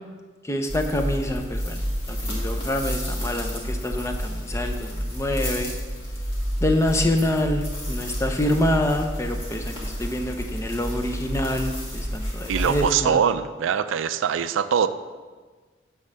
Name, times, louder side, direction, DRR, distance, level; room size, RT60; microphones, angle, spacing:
voice 1, 0.4-1.8 2.1-5.7 6.6-13.2, left 1 dB, 15° left, 4 dB, 0.5 m, -26 dB
sound 1, 0.7-12.9, equal, 30° left, 1.6 m, -30 dB
voice 2, 12.5-14.9, right 7 dB, 90° right, 13 dB, 0.4 m, -22 dB
7.5 x 3.6 x 6.4 m, 1.4 s
head